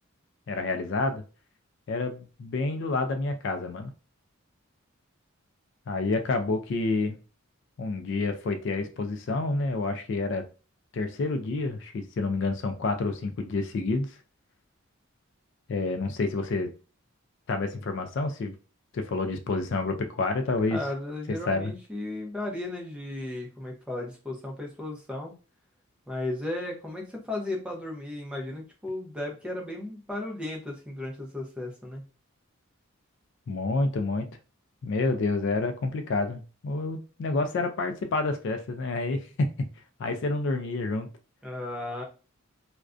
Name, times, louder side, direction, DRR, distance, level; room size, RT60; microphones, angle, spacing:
voice 1, 0.5-1.2 1.9-3.9 5.9-7.2 7.8-10.4 10.9-14.2 15.7-16.7 17.5-18.5 18.9-20.8 21.5-21.7 33.5-34.3 34.8-39.5 40.0-41.1, left 3 dB, 55° left, 7 dB, 0.3 m, -28 dB
voice 2, 20.7-25.3 26.1-32.0 41.4-42.0, left 1 dB, 5° right, 0 dB, 0.5 m, -35 dB
2.4 x 2.1 x 2.4 m, 0.34 s
head